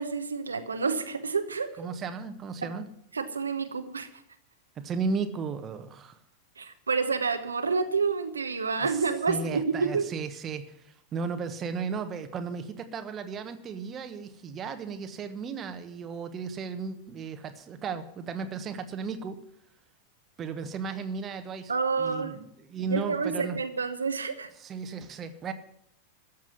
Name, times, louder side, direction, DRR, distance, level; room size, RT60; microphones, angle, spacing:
voice 1, 0.0-1.7 2.6-2.7 3.1-4.1 6.6-10.1 21.7-22.4 22.9-24.5, right 5 dB, 75° right, 7 dB, 1.1 m, -29 dB
voice 2, 1.8-2.9 4.7-6.2 8.8-19.4 20.4-21.7 22.0-23.6 24.6-25.5, right 5 dB, 25° right, 8 dB, 1.3 m, -35 dB
14.0 x 7.5 x 9.6 m, 0.71 s
figure-of-eight pair, 90°, 0 cm